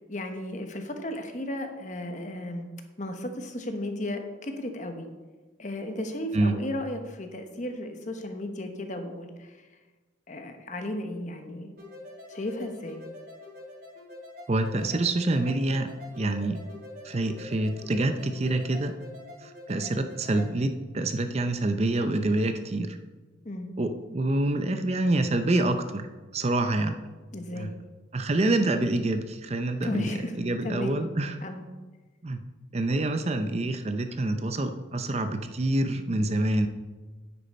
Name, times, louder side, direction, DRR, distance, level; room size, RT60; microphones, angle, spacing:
voice 1, 0.1-2.7 3.0-5.1 5.6-9.7 10.3-11.7 12.3-13.0 23.4-23.7 27.3-27.8 29.8-30.3 30.6-31.0 31.4-31.6, left 1 dB, 40° left, 6 dB, 1.0 m, -34 dB
sound 1, 11.8-20.5, left 2 dB, 50° right, 2.9 m, -45 dB
voice 2, 14.5-15.9 16.2-16.6 17.0-18.9 19.4-23.0 23.8-26.0 26.3-27.0 27.6-27.7 28.1-31.4 32.2-32.4 32.7-36.7, right 2 dB, 35° right, 7 dB, 0.5 m, -26 dB
9.7 x 8.5 x 4.2 m, 1.3 s
head